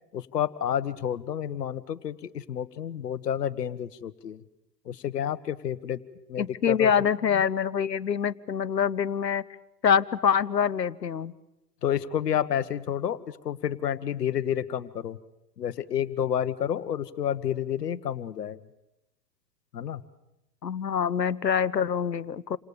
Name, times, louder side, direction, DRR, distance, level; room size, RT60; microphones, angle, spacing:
voice 1, 0.1-4.4 4.9-6.0 6.3-6.9 7.3-7.4 11.8-15.2 15.6-18.6 19.7-20.0, left 9 dB, 70° left, 14 dB, 1.6 m, -30 dB
voice 2, 6.4-9.4 9.8-11.3 20.6-22.6, left 7 dB, 90° left, 18 dB, 1.2 m, -25 dB
29.0 x 26.5 x 7.1 m, 0.89 s
hypercardioid pair, 115°, 49 cm